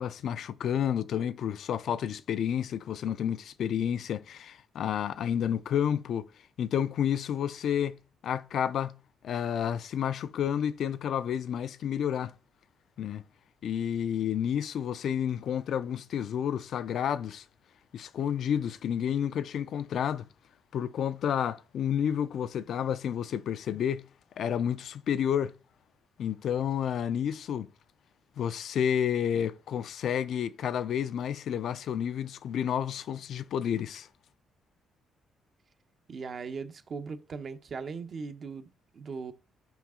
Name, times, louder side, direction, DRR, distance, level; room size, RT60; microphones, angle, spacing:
voice 1, 0.0-6.3 6.6-8.0 8.2-9.0 9.2-12.3 13.0-13.2 13.6-17.4 17.9-20.3 20.7-24.1 24.4-25.5 26.2-27.7 28.4-34.1, left 9 dB, 70° left, 0.4 m, -30 dB
voice 2, 36.1-39.3, right 5 dB, 50° right, 0.7 m, -39 dB
5.8 x 4.8 x 3.7 m
cardioid pair, 90°, 0 cm